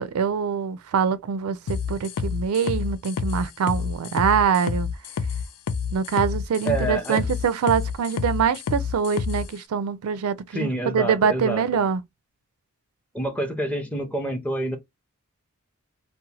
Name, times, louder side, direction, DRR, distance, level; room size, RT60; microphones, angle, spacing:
voice 1, 0.0-4.9 5.9-12.0, right 7 dB, 70° right, 0.3 m, -24 dB
sound 1, 1.7-9.5, left 6 dB, 85° left, 0.4 m, -28 dB
voice 2, 6.6-7.3 10.5-11.9 13.1-14.8, right 1 dB, 5° left, 0.6 m, -27 dB
2.7 x 2.1 x 2.8 m
head